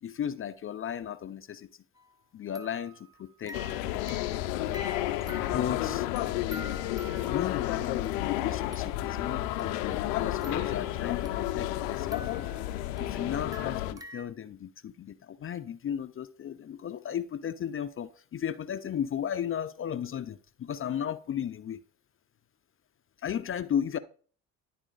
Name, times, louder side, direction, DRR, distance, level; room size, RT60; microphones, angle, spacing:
voice 1, 0.0-1.7 2.3-3.0 3.4-3.5 5.1-6.1 7.3-12.4 13.0-21.8 23.2-24.0, left 9 dB, 35° left, 0.5 m, -35 dB
sound 1, 2.0-2.1 2.6-8.4 8.7-9.1 9.6-11.7 12.0-14.2, right 1 dB, 10° right, 1.2 m, -48 dB
sound 2, 3.5-13.9, left 14 dB, 90° left, 0.5 m, -31 dB
11.0 x 4.2 x 3.8 m
supercardioid pair, 65°, 39 cm